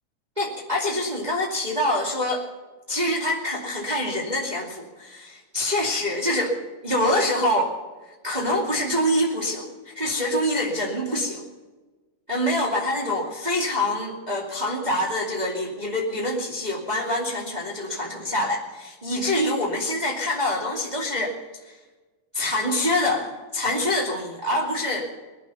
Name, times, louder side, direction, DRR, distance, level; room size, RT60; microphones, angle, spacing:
voice 1, 0.4-2.5 2.9-6.6 6.8-7.7 8.2-11.4 12.3-21.4 21.7-21.8 22.3-25.1, left 1 dB, 15° right, -2 dB, 2.2 m, -25 dB
21.0 x 11.0 x 5.7 m, 1.3 s
omnidirectional pair, 3.6 m